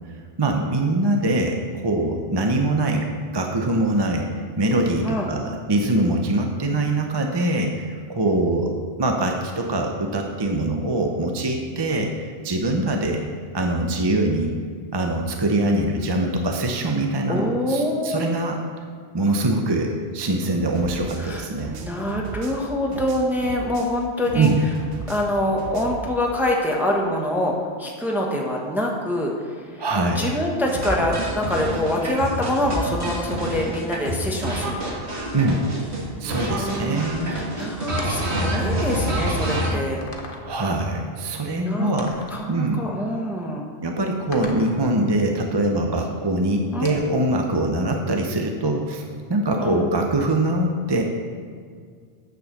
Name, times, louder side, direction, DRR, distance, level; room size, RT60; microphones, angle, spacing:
voice 1, 0.4-13.2 13.5-14.5 14.9-18.6 19.1-21.7 24.3-24.6 29.8-30.3 35.3-35.7 36.2-37.5 40.4-42.2 42.5-42.8 43.8-51.0, right 2 dB, 25° right, 2 dB, 0.7 m, -23 dB
voice 2, 17.3-18.2 21.2-24.5 25.1-29.3 29.7-29.8 30.1-34.9 36.2-40.0 41.6-41.9 42.3-43.6 46.7-47.0 49.6-50.0, left 1 dB, ahead, -1 dB, 1.1 m, -25 dB
sound 1, 20.7-24.0 24.2-26.1, right 4 dB, 65° right, 1.0 m, -37 dB
sound 2, 30.7-36.1 36.3-39.7, right 1 dB, 80° right, 1.9 m, -27 dB
sound 3, 38.0-38.4 39.2-39.3 40.0-40.5 42.0-42.4 44.3-44.8 46.8-47.3, left 3 dB, 55° left, 1.2 m, -37 dB
7.8 x 7.0 x 6.6 m, 2.1 s
omnidirectional pair, 1.1 m